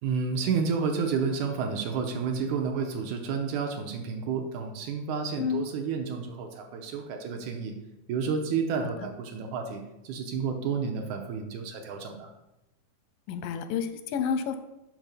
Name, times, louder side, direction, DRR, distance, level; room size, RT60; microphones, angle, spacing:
voice 1, 0.0-7.7 8.1-12.3, right 5 dB, 75° right, 4 dB, 2.0 m, -30 dB
voice 2, 13.3-14.6, left 7 dB, 90° left, 9 dB, 2.3 m, -29 dB
6.4 x 6.2 x 5.2 m, 0.94 s
omnidirectional pair, 3.8 m